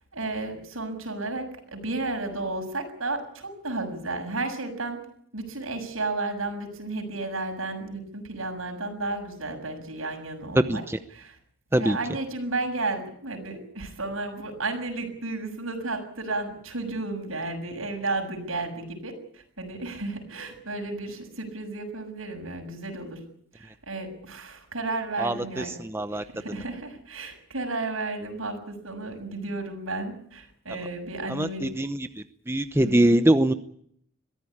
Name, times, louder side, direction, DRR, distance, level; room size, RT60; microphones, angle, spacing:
voice 1, 0.1-5.0 5.3-10.8 11.1-11.4 11.8-23.2 23.5-25.8 26.1-31.7 32.8-33.2, right 2 dB, 85° right, 5 dB, 6.7 m, -33 dB
voice 2, 31.3-32.1 32.5-33.5, right 1 dB, 10° right, 9 dB, 0.8 m, -22 dB
22.5 x 15.5 x 9.8 m, 0.67 s
head